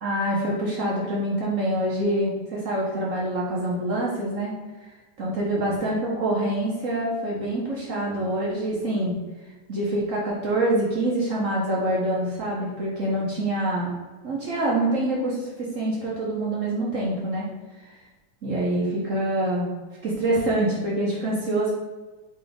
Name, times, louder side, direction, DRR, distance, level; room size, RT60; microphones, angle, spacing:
voice 1, 0.0-4.5 5.2-9.1 9.7-13.9 14.2-17.5 18.4-19.7 20.0-21.7, right 1 dB, 60° right, -5 dB, 0.8 m, -25 dB
4.0 x 3.4 x 3.8 m, 1.2 s
omnidirectional pair, 2.3 m